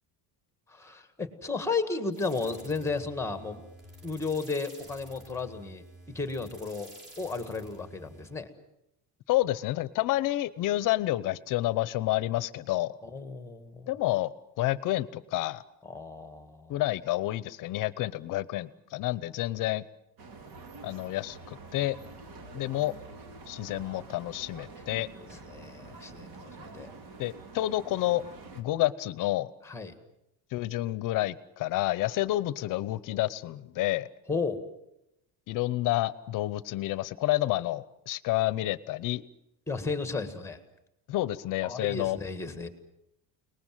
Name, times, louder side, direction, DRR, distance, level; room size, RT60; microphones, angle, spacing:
voice 1, 0.7-3.6 4.0-6.9 7.2-8.5 13.0-13.9 15.8-16.8 24.9-26.9 29.6-29.9 34.3-34.6 39.7-40.6 41.6-42.7, left 4 dB, 5° left, 9 dB, 1.7 m, -34 dB
sound 1, 2.1-8.4, right 1 dB, 25° right, 5.0 m, -50 dB
voice 2, 9.3-12.9 13.9-15.6 16.7-19.9 20.8-22.0 22.5-22.9 23.5-25.1 27.2-28.2 28.5-29.5 30.5-34.1 35.5-39.2 41.1-42.2, left 16 dB, 45° left, 17 dB, 1.0 m, -29 dB
sound 2, 20.2-28.6, right 3 dB, 50° right, 3.0 m, -47 dB
30.0 x 20.0 x 7.6 m, 0.85 s
cardioid pair, 175°, 43 cm